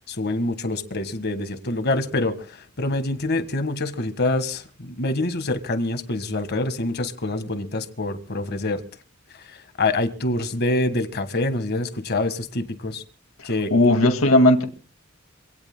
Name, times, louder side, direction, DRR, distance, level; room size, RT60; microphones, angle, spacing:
voice 1, 0.0-8.8 9.5-13.0 13.4-13.7, left 2 dB, 50° left, 1.6 m, -26 dB
voice 2, 13.7-14.6, left 1 dB, 85° left, 2.0 m, -16 dB
27.0 x 17.5 x 2.2 m
head